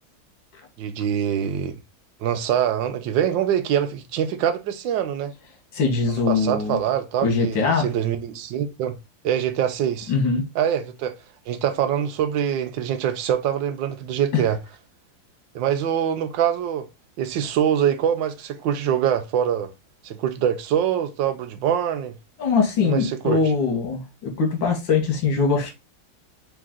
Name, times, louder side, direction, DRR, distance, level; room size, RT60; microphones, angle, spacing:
voice 1, 0.8-1.8 2.2-5.3 6.1-9.0 9.2-10.1 10.5-11.1 11.5-14.6 15.5-16.9 17.2-19.7 20.0-22.2 22.8-23.5, right 9 dB, 75° right, 1.3 m, -24 dB
voice 2, 5.7-6.8 7.2-7.9 10.1-10.4 22.4-25.7, left 4 dB, 75° left, 2.0 m, -22 dB
4.0 x 3.3 x 3.7 m
omnidirectional pair, 2.1 m